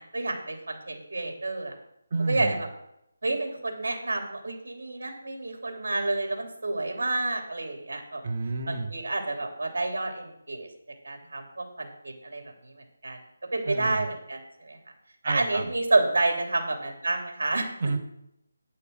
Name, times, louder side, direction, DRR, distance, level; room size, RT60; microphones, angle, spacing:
voice 1, 0.0-1.7 2.3-2.7 3.2-8.2 8.7-10.7 11.0-12.7 13.0-13.2 13.5-14.8 15.2-17.7, right 2 dB, 70° right, 3 dB, 3.0 m, -29 dB
voice 2, 2.1-2.6 8.2-8.9 13.7-14.1 15.2-15.7 17.8-18.0, right 3 dB, 40° right, 3 dB, 1.4 m, -29 dB
9.8 x 6.6 x 6.5 m, 0.81 s
figure-of-eight pair, 165°, 0 cm